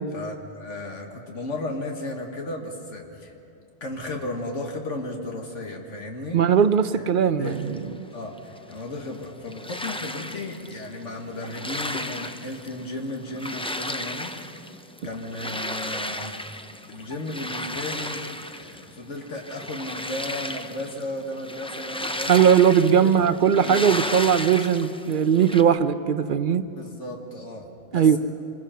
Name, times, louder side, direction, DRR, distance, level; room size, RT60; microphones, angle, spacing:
voice 1, 0.1-3.3 3.8-6.4 6.9-7.1 7.4-7.6 8.1-14.6 15.0-16.4 16.9-22.5 23.0-23.1 23.6-24.1 26.8-28.2, left 1 dB, 80° left, 1 dB, 2.0 m, -34 dB
voice 2, 6.3-7.8 22.3-26.7 27.9-28.2, right 8 dB, 50° right, 12 dB, 0.8 m, -19 dB
sound 1, 7.4-25.6, left 1 dB, 10° left, 0.4 m, -35 dB
26.5 x 21.0 x 5.7 m, 2.6 s
omnidirectional pair, 1.2 m